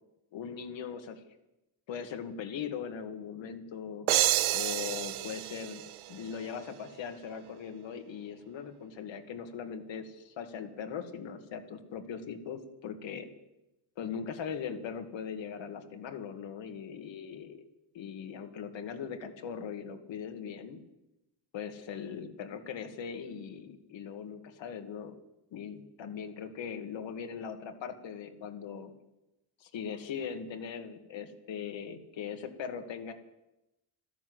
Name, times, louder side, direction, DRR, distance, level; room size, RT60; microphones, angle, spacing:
voice 1, 0.3-1.2 1.9-4.1 4.5-5.8 6.1-13.3 14.0-17.6 17.9-20.8 21.5-25.1 25.5-28.9 29.6-33.1, left 7 dB, 70° left, 6 dB, 2.1 m, -40 dB
sound 1, 4.1-6.7, right 15 dB, 80° right, 0.8 m, -30 dB
13.5 x 13.5 x 7.8 m, 0.93 s
cardioid pair, 135°, 48 cm